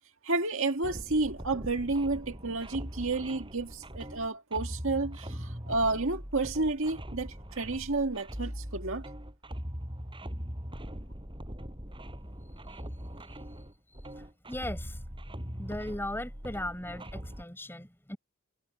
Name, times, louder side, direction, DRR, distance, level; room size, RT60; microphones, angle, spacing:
voice 1, 0.2-9.1, right 3 dB, 65° right, 2.0 m, -31 dB
sound 1, 0.8-17.4, equal, 25° right, 5.8 m, -41 dB
voice 2, 14.5-15.0 15.5-18.2, left 1 dB, 10° left, 4.4 m, -37 dB
head